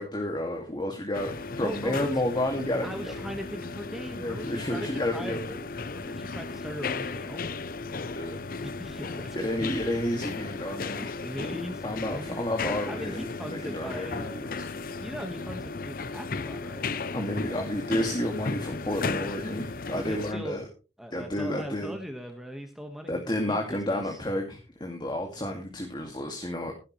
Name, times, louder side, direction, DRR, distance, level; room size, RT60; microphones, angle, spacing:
voice 1, 0.0-3.1 4.0-5.6 8.1-8.4 9.3-11.1 11.8-14.7 17.1-20.7 21.1-21.9 23.1-26.7, left 1 dB, 25° left, 2 dB, 2.2 m, -31 dB
sound 1, 1.1-20.3, left 4 dB, 50° left, 0.6 m, -35 dB
voice 2, 1.6-2.1 2.8-5.3 5.9-7.4 8.6-9.7 11.2-12.4 12.9-14.4 15.0-16.9 19.9-20.6 21.0-24.2, equal, ahead, 4 dB, 1.5 m, -39 dB
16.0 x 11.5 x 3.2 m, 0.33 s
head